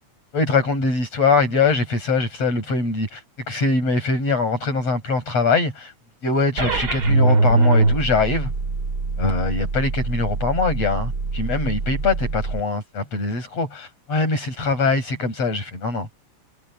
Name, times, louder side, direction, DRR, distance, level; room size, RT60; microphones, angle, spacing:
voice 1, 0.3-3.2 3.5-5.9 6.2-8.5 9.2-16.1, left 3 dB, 60° left, 9.0 m, -22 dB
sound 1, 6.6-12.6, right 3 dB, 35° right, 3.4 m, -22 dB
omnidirectional pair, 3.3 m